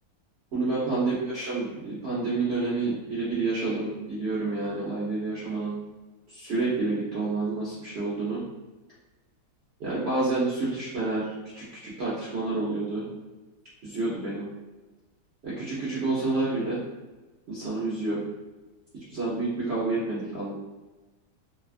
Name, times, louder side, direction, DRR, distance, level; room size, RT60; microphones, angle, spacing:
voice 1, 0.5-5.8 6.3-8.4 9.8-13.1 13.8-14.5 15.4-16.8 17.5-18.2 18.9-20.5, right 3 dB, 55° right, -8 dB, 0.8 m, -29 dB
3.3 x 2.3 x 2.4 m, 1.2 s
omnidirectional pair, 1.6 m